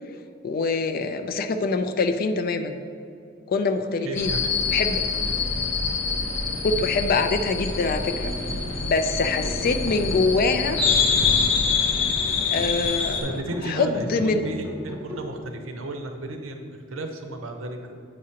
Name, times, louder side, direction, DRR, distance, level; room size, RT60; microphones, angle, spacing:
voice 1, 0.4-2.8 3.5-4.3 4.7-5.0 6.6-8.3 8.8-10.8 12.5-13.2 13.6-14.4, left 3 dB, 45° left, 7 dB, 0.4 m, -24 dB
voice 2, 4.0-4.5 13.1-18.0, right 2 dB, 80° right, 4 dB, 0.7 m, -34 dB
sound 1, 4.1-13.2, left 5 dB, 65° left, 0.8 m, -25 dB
sound 2, 7.9-15.3, left 1 dB, 15° right, 0.7 m, -39 dB
8.3 x 4.9 x 2.9 m, 2.4 s
head